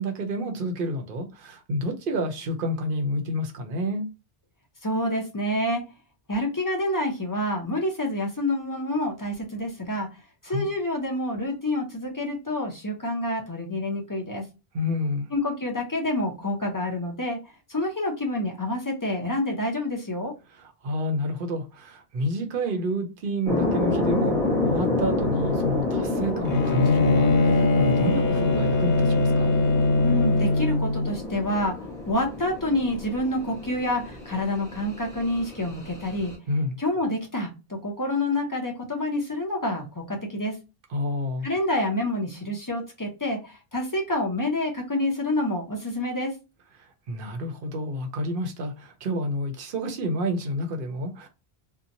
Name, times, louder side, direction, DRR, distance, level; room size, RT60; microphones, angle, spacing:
voice 1, 0.0-4.1 10.5-10.7 14.7-15.3 20.6-29.5 36.5-36.8 40.9-41.5 46.8-51.3, equal, 65° right, 0.7 m, -29 dB
voice 2, 4.8-5.8 6.3-10.1 10.4-14.4 15.3-17.4 17.7-20.3 30.0-36.3 36.8-40.6 41.4-46.3, left 1 dB, 30° left, 0.4 m, -28 dB
sound 1, 23.5-36.3, left 2 dB, 5° left, 0.8 m, -29 dB
Bowed string instrument, 26.5-31.1, left 2 dB, 80° left, 0.9 m, -21 dB
2.8 x 2.1 x 2.5 m
omnidirectional pair, 1.0 m